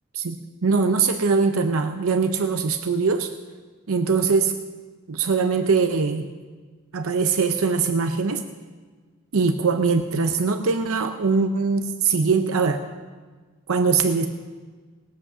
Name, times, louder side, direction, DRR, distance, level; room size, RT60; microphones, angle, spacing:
voice 1, 0.1-3.3 3.9-4.5 5.1-6.3 6.9-8.4 9.3-12.9 13.7-14.3, right 4 dB, 75° right, 8 dB, 0.6 m, -22 dB
19.0 x 8.2 x 6.1 m, 1.4 s
head